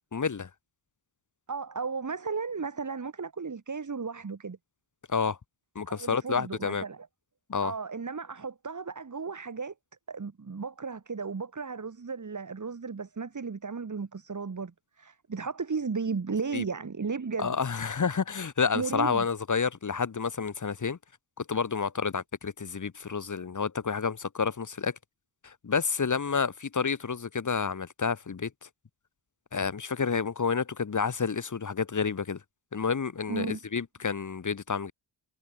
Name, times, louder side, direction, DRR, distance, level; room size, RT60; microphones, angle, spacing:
voice 1, 0.1-0.5 5.1-5.4 5.7-6.8 7.5-7.7 16.5-16.6 17.4-21.0 21.4-24.9 25.4-28.5 29.5-32.4 32.7-34.9, left 5 dB, 40° left, 1.4 m, -29 dB
voice 2, 1.5-4.6 5.9-7.1 7.6-9.7 10.1-17.6 18.7-19.3 33.3-33.6, right 5 dB, 35° right, 2.3 m, -35 dB
cardioid pair, 65°, 49 cm